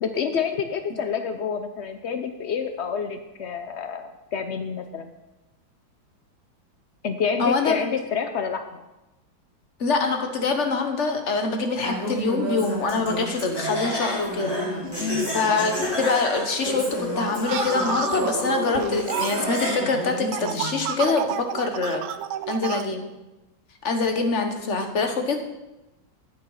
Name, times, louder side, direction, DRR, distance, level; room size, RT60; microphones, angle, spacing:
voice 1, 0.0-5.1 7.0-8.8 15.0-15.3, left 6 dB, 85° left, 8 dB, 0.6 m, -28 dB
voice 2, 7.4-7.7 9.8-14.6 15.3-22.0 22.5-23.1 23.8-25.4, left 3 dB, 40° left, 5 dB, 1.4 m, -25 dB
Female speech woman speaking, 11.8-13.8 14.2-16.2 16.7-20.8, equal, 20° right, 4.1 m, -32 dB
Laughter, 13.3-20.1, equal, 10° left, 3.8 m, -30 dB
sound 1, 17.5-22.8, right 10 dB, 85° right, 1.4 m, -32 dB
12.0 x 8.7 x 5.7 m, 1.0 s
omnidirectional pair, 2.1 m